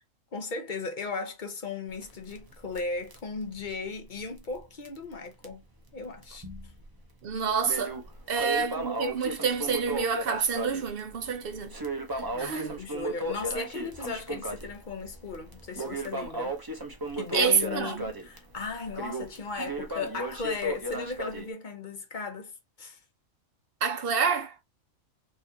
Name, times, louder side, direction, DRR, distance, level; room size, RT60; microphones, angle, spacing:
voice 1, 0.3-5.6 5.9-6.5 8.3-8.5 12.3-16.6 17.1-23.0, left 4 dB, 45° left, 0.9 m, -36 dB
Crackle, 1.9-4.6 4.9-5.0 5.4-5.5 6.2-6.8 7.2-21.5, right 1 dB, 20° right, 0.7 m, -35 dB
voice 2, 7.2-8.0 8.3-11.7 12.4-12.7 17.3-18.1 23.8-24.5, right 6 dB, 50° right, 0.9 m, -28 dB
4.4 x 3.1 x 2.7 m
omnidirectional pair, 1.3 m